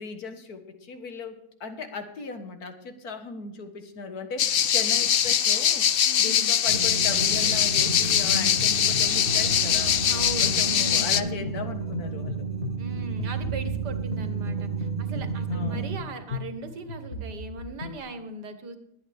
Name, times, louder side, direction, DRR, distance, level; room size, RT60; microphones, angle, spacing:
voice 1, 0.0-5.9 6.2-10.0 10.4-12.5 15.5-15.9, left 4 dB, 65° left, 7 dB, 1.9 m, -38 dB
sound 1, 4.4-11.2, left 9 dB, 85° left, 0.5 m, -22 dB
voice 2, 6.0-6.6 10.1-11.5 12.8-18.8, right 2 dB, 85° right, 8 dB, 2.1 m, -38 dB
sound 2, 6.7-18.0, left 3 dB, 40° left, 2.0 m, -37 dB
sound 3, 6.7-16.0, right 6 dB, 35° right, 1.2 m, -33 dB
22.0 x 8.8 x 3.5 m, 0.81 s
omnidirectional pair, 1.7 m